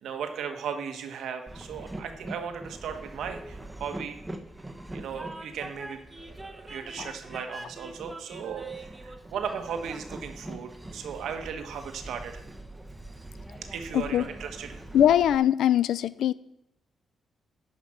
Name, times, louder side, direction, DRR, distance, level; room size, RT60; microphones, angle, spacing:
voice 1, 0.0-4.2 4.9-12.4 13.7-14.8, right 7 dB, 85° right, 6 dB, 1.4 m, -36 dB
Train, 1.5-15.4, right 1 dB, 10° right, 1.1 m, -43 dB
voice 2, 13.9-14.2 14.9-16.3, left 10 dB, 85° left, 18 dB, 0.4 m, -22 dB
11.0 x 5.2 x 7.5 m, 0.83 s
cardioid pair, 100°, 0 cm